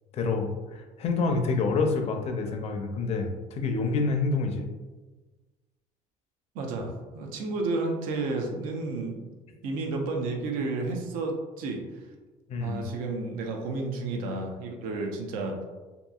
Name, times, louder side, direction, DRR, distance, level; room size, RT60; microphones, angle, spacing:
voice 1, 0.1-4.7 6.8-6.9 12.5-12.8, left 4 dB, 45° left, 4 dB, 0.4 m, -28 dB
voice 2, 6.5-9.3 9.6-11.8 12.6-15.6, right 3 dB, 75° right, 1 dB, 0.5 m, -31 dB
2.8 x 2.5 x 2.3 m, 1.2 s
cardioid pair, 110°, 15 cm